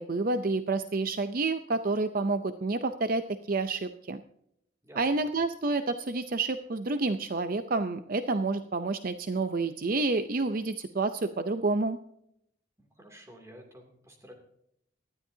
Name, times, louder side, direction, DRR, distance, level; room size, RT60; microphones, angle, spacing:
voice 1, 0.0-4.2 5.0-12.0, right 3 dB, 45° right, 9 dB, 0.6 m, -29 dB
voice 2, 12.8-14.3, equal, 15° right, 3 dB, 2.7 m, -51 dB
19.0 x 12.5 x 2.8 m, 0.73 s
head